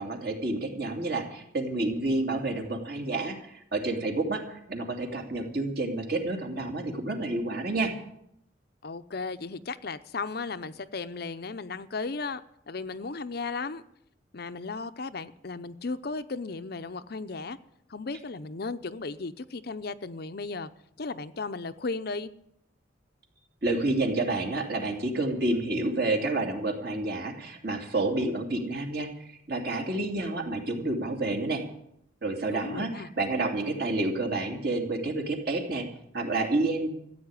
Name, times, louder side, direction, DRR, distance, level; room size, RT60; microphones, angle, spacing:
voice 1, 0.0-7.9 23.6-31.6 32.2-35.8 36.1-36.9, right 2 dB, 55° right, 3 dB, 2.6 m, -29 dB
voice 2, 8.8-12.4 12.7-13.8 14.3-17.6 17.9-20.7 21.0-22.3 32.5-33.1, left 3 dB, 50° left, 11 dB, 0.6 m, -35 dB
14.5 x 8.6 x 9.6 m, 0.75 s
head